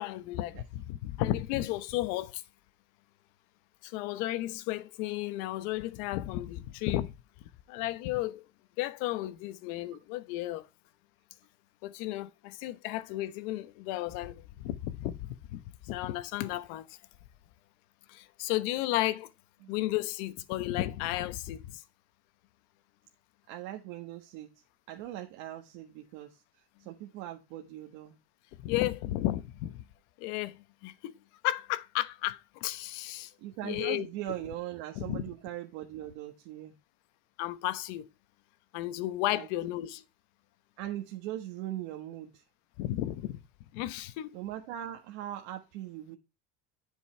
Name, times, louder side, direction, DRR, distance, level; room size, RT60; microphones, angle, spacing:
voice 1, 0.0-2.4 3.8-7.2 7.7-8.4 8.8-10.7 11.8-17.0 18.1-19.3 19.7-21.8 28.6-29.8 30.2-31.2 31.4-33.3 33.6-34.1 35.0-35.2 37.4-38.1 38.7-40.0 42.8-43.4 43.7-44.3, left 15 dB, 75° left, 1.0 m, -33 dB
voice 2, 23.5-24.5 24.9-26.4 26.8-28.2 33.4-36.8 39.3-39.5 40.8-42.4 44.3-46.2, right 13 dB, 70° right, 1.5 m, -40 dB
10.0 x 5.4 x 4.4 m
cardioid pair, 170°, 35 cm